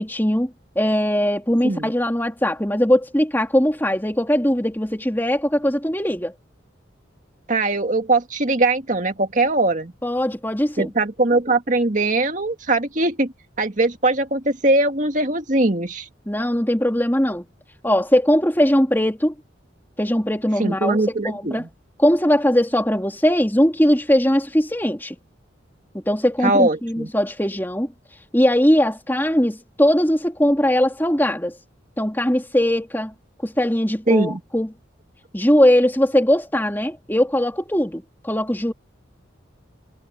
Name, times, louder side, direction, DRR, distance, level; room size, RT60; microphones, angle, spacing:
voice 1, 0.0-6.3 10.0-10.9 16.3-17.4 17.8-19.3 20.0-21.0 21.2-21.6 22.0-25.2 25.9-27.9 28.3-31.6 32.0-33.1 33.4-34.7 35.3-38.7, equal, 10° left, 3.1 m, -20 dB
voice 2, 7.5-9.9 10.8-13.3 13.6-16.1 20.6-21.7 26.4-27.1 34.1-34.4, right 2 dB, 40° right, 2.0 m, -21 dB
head